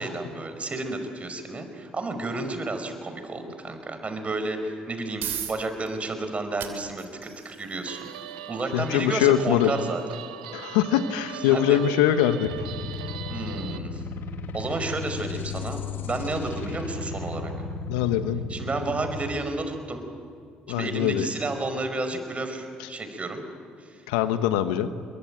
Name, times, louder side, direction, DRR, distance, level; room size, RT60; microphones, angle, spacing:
voice 1, 0.0-8.1 8.5-10.0 11.5-11.8 13.3-14.0 14.5-17.5 18.5-20.0 20.7-23.4 23.8-24.0, right 2 dB, 35° right, 7 dB, 5.2 m, -31 dB
sound 1, 4.7-19.6, right 10 dB, 65° right, 3.0 m, -45 dB
Guitar, 7.9-13.8, right 11 dB, 85° right, 0.8 m, -40 dB
voice 2, 8.7-9.7 10.5-12.5 17.9-18.4 20.7-21.3 22.8-22.9 24.1-24.9, left 11 dB, 80° left, 11 dB, 1.2 m, -23 dB
sound 2, 12.4-19.3, left 4 dB, 60° left, 1.9 m, -35 dB
26.0 x 22.5 x 9.0 m, 2.3 s
hypercardioid pair, 55°, 4 cm